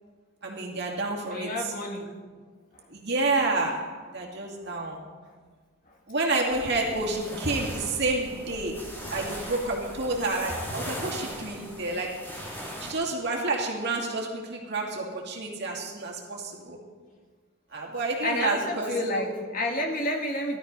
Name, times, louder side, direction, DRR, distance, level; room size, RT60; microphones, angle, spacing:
voice 1, 0.4-1.7 2.9-5.1 6.1-12.4 12.8-16.8 17.7-19.4, right 2 dB, 50° right, -1 dB, 2.6 m, -29 dB
voice 2, 1.3-2.1 7.0-7.3 18.2-20.6, left 1 dB, 40° left, 1 dB, 2.2 m, -30 dB
sound 1, 6.5-12.9, equal, 10° left, 2.6 m, -39 dB
16.5 x 12.5 x 5.5 m, 1.5 s
head